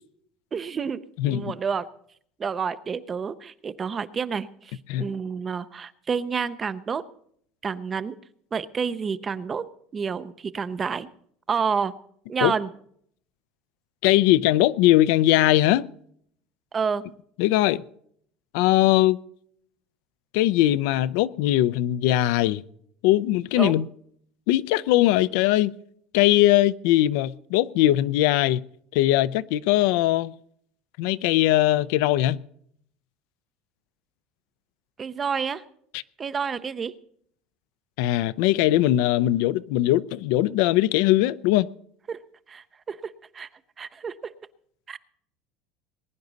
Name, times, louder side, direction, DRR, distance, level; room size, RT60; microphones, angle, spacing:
voice 1, 0.5-1.9 2.4-7.0 7.6-8.2 8.5-9.7 9.9-11.1 11.5-11.9 12.3-12.7 16.7-17.0 23.6-23.8 35.0-35.6 36.2-36.9 42.1-42.2 42.5-43.5 43.8-44.3 44.9-45.0, right 6 dB, 15° right, 0.5 m, -29 dB
voice 2, 1.2-1.5 4.9-5.1 12.4-12.5 14.0-15.9 17.4-17.8 18.5-19.2 20.3-22.6 23.0-23.9 24.5-25.7 26.1-28.6 28.9-30.3 31.0-32.4 38.0-41.7, left 15 dB, 60° left, 0.5 m, -20 dB
20.5 x 10.5 x 4.0 m
cardioid pair, 180°, 0 cm